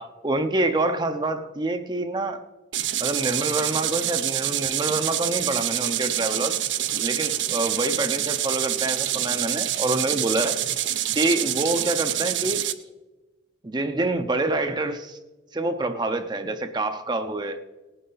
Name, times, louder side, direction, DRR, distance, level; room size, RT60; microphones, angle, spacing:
voice 1, 0.0-2.5 3.0-6.6 7.0-10.6 11.1-12.7 13.6-15.2 15.5-17.6, right 2 dB, 25° right, 8 dB, 0.6 m, -26 dB
sound 1, 2.7-12.7, right 12 dB, 75° right, 0.6 m, -26 dB
18.5 x 9.6 x 3.9 m, 1.2 s
head